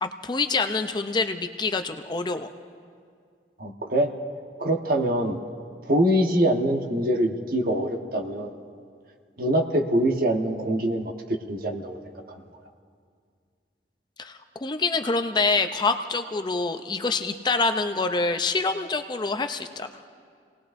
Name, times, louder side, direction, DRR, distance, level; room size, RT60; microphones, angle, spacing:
voice 1, 0.0-2.5 14.2-19.9, left 3 dB, 25° left, 8 dB, 0.5 m, -26 dB
voice 2, 3.6-4.1 4.6-5.4 5.9-8.5 9.4-12.0 12.3-12.4, right 1 dB, 55° right, 3 dB, 1.2 m, -24 dB
28.5 x 19.0 x 2.6 m, 2.1 s
head